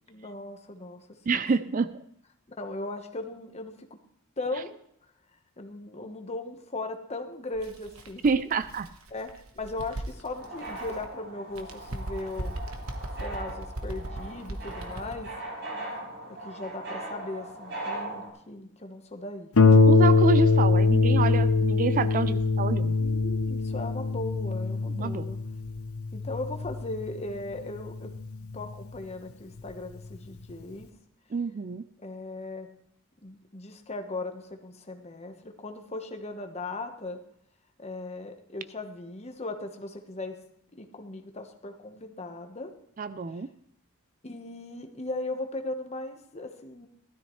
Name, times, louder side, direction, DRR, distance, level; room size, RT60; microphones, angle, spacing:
voice 1, 0.1-1.7 2.6-3.9 4.4-4.7 5.6-8.5 9.1-9.3 9.5-12.6 13.2-15.3 16.4-19.5 23.0-25.4 26.1-28.1 28.5-30.9 32.0-32.7 33.2-37.2 37.8-40.4 40.7-42.7 44.2-46.9, left 2 dB, 30° left, 5 dB, 1.2 m, -38 dB
voice 2, 1.3-1.9 8.2-8.9 19.9-22.9 24.9-25.3 31.3-31.8 43.0-43.5, right 4 dB, 40° right, 13 dB, 0.4 m, -27 dB
Bird, 7.5-11.1 11.5-15.3, right 1 dB, 80° right, 1.2 m, -39 dB
sound 1, 10.3-18.3, right 1 dB, 55° right, 5.7 m, -39 dB
Harp, 19.6-28.7 29.6-29.7 30.1-30.2, left 3 dB, 80° left, 0.9 m, -23 dB
16.0 x 13.0 x 3.2 m, 0.70 s
head